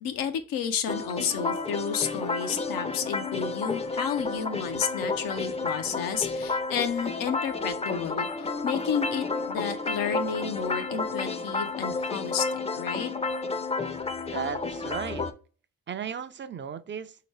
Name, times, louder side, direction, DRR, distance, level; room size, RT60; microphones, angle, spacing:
voice 1, 0.0-13.1, left 7 dB, 90° left, 0.6 m, -31 dB
sound 1, 0.9-15.3, left 3 dB, 20° left, 0.5 m, -31 dB
voice 2, 14.3-15.3 15.9-17.2, right 8 dB, 35° right, 0.4 m, -35 dB
3.5 x 2.9 x 3.1 m
supercardioid pair, 55°, 34 cm